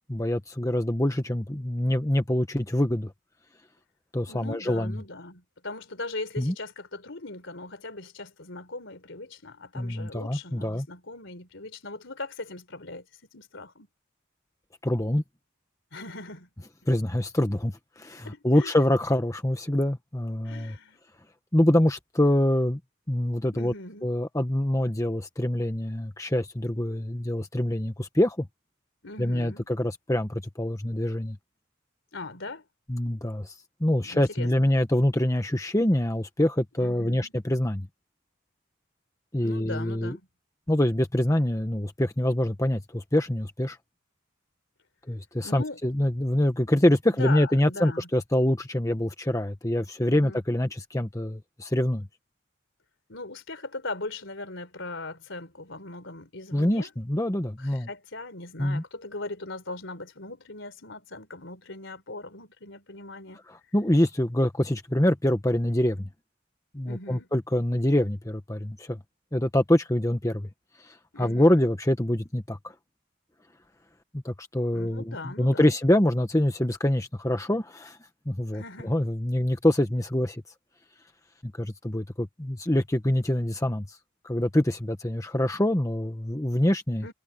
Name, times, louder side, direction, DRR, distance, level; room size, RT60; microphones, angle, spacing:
voice 1, 0.1-3.1 4.1-5.0 6.4-6.5 9.7-10.9 14.8-15.2 16.9-20.8 21.5-22.8 23.1-23.7 24.0-28.5 29.2-31.4 32.9-37.9 39.3-40.2 40.7-43.8 45.1-52.1 56.5-57.9 58.6-58.8 63.5-66.1 66.7-69.0 69.3-70.5 70.8-72.7 74.1-78.0 78.3-80.4 81.6-84.0 84.2-87.1, left 1 dB, 15° left, 1.2 m, -25 dB
voice 2, 4.3-13.1 13.3-13.9 15.9-16.5 18.2-18.7 20.4-21.0 23.5-24.1 29.0-29.7 32.1-32.6 34.0-34.7 36.8-37.3 39.4-40.3 45.4-45.8 46.7-48.1 50.0-50.4 53.1-56.9 57.6-63.4 66.7-67.3 71.1-71.7 74.7-75.8 78.5-79.0 87.0-87.1, left 2 dB, 65° left, 4.2 m, -39 dB
head